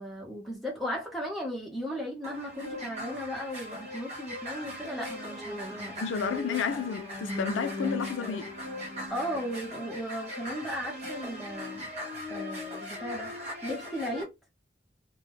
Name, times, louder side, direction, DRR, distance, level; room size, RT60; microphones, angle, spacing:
voice 1, 0.0-6.0 9.1-11.9 12.3-13.3 13.6-14.3, equal, ahead, 0.9 m, -36 dB
sound 1, 2.2-14.2, left 1 dB, 35° right, 0.8 m, -38 dB
voice 2, 6.0-8.5, left 6 dB, 80° left, 0.4 m, -31 dB
2.2 x 2.1 x 3.1 m
head